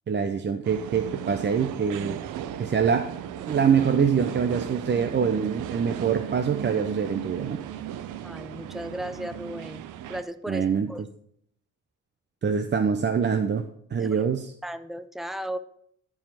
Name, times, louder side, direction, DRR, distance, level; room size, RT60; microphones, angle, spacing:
voice 1, 0.1-2.2 2.6-3.1 3.5-7.6 10.5-10.9 12.4-13.6 13.9-14.5, right 6 dB, 35° right, 7 dB, 0.8 m, -24 dB
sound 1, 0.6-10.2, right 10 dB, 85° right, 0.7 m, -36 dB
voice 2, 8.2-11.0 14.0-14.1 14.6-15.6, equal, ahead, 12 dB, 0.7 m, -36 dB
13.0 x 4.9 x 5.8 m, 0.68 s
cardioid pair, 90°, 30 cm